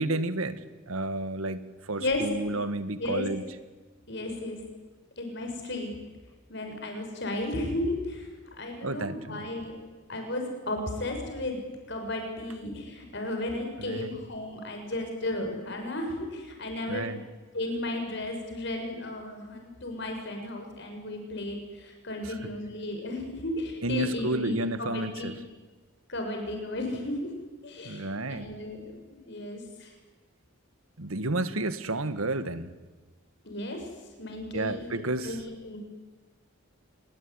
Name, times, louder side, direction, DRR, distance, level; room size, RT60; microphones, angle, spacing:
voice 1, 0.0-3.4 8.8-9.5 13.8-14.2 16.9-17.2 22.2-22.5 23.8-25.4 27.8-28.5 31.0-32.7 34.5-35.4, right 2 dB, 80° right, 12 dB, 1.7 m, -31 dB
voice 2, 4.1-4.6 5.2-5.9 6.5-8.3 8.6-9.8 10.1-11.6 11.9-17.2 17.5-25.3 26.1-27.2 27.6-29.9 33.4-33.9 34.2-35.8, left 1 dB, 55° left, 4 dB, 6.8 m, -34 dB
27.0 x 22.0 x 9.9 m, 1.3 s
head